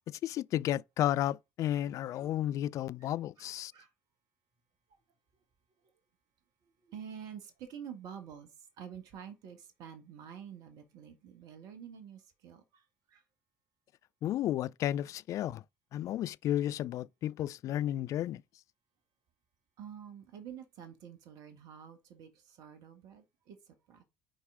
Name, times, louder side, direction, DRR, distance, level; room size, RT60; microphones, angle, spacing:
voice 1, 0.1-3.7 14.2-15.6 15.9-18.4, left 12 dB, 50° left, 0.3 m, -32 dB
voice 2, 3.0-3.9 4.9-5.0 5.8-5.9 6.6-13.2 19.8-24.0, right 8 dB, 60° right, 1.6 m, -49 dB
6.2 x 4.6 x 3.7 m
figure-of-eight pair, 55°, 7 cm